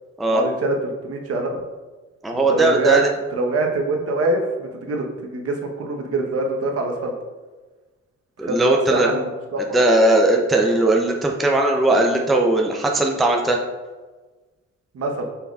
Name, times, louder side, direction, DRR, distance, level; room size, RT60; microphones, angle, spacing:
voice 1, 0.3-1.6 2.3-3.0 3.3-7.1 8.4-9.6 14.9-15.2, right 2 dB, 50° right, 1 dB, 1.0 m, -24 dB
voice 2, 2.2-3.1 8.4-9.1 9.7-13.6, right 2 dB, ahead, 1 dB, 0.4 m, -18 dB
5.6 x 3.8 x 2.3 m, 1.3 s
cardioid pair, 90°, 30 cm